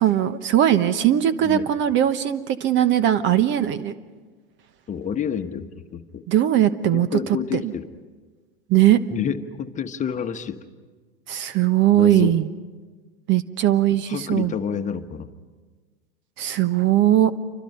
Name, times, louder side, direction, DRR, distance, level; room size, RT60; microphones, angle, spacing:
voice 1, 0.0-3.9 6.3-7.1 7.5-7.7 8.7-9.0 11.3-12.5 13.3-14.5 16.4-17.3, right 11 dB, 40° right, 14 dB, 1.0 m, -19 dB
voice 2, 4.9-6.2 6.9-7.9 9.1-10.6 11.9-12.3 13.9-15.3, left 7 dB, 25° left, 8 dB, 1.2 m, -29 dB
28.5 x 25.0 x 5.6 m, 1.4 s
hypercardioid pair, 90°, 29 cm